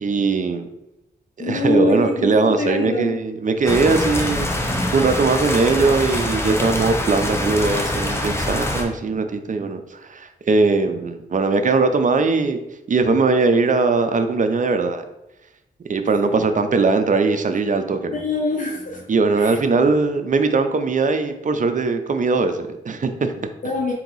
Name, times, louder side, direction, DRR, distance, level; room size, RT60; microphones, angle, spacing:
voice 1, 0.0-0.7 1.4-12.6 12.9-15.0 15.9-18.2 19.1-23.5, right 4 dB, 45° right, 7 dB, 0.5 m, -20 dB
voice 2, 1.4-3.1 18.1-19.0 19.3-19.6 23.6-23.9, left 2 dB, 45° left, -1 dB, 0.8 m, -24 dB
sound 1, 3.7-8.8, left 1 dB, 15° left, 0.8 m, -24 dB
4.5 x 2.9 x 3.9 m, 0.92 s
cardioid pair, 70°, 18 cm